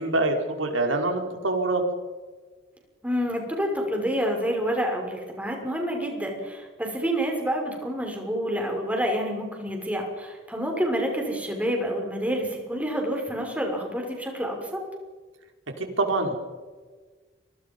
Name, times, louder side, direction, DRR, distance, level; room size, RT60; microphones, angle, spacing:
voice 1, 0.0-1.8 15.8-16.3, right 2 dB, 85° right, 3 dB, 5.0 m, -25 dB
voice 2, 3.0-14.8, equal, 5° right, 1 dB, 6.1 m, -28 dB
30.0 x 25.0 x 5.6 m, 1.4 s
head